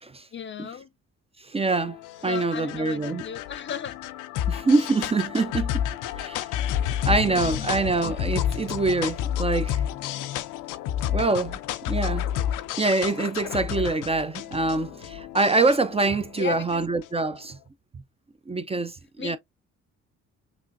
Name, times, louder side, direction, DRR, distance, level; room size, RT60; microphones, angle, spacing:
voice 1, 0.3-0.9 2.3-4.0 7.1-7.7 16.4-16.8 19.2-19.4, left 8 dB, 40° left, 0.5 m, -36 dB
voice 2, 1.4-3.2 4.5-5.8 6.1-6.5 7.0-9.8 11.1-11.6 11.9-12.3 12.8-17.6 17.9-18.0 18.5-19.4, right 3 dB, 20° right, 0.5 m, -25 dB
sound 1, 1.7-17.2, left 10 dB, 90° left, 0.6 m, -30 dB
6.0 x 2.5 x 2.5 m
cardioid pair, 90°, 30 cm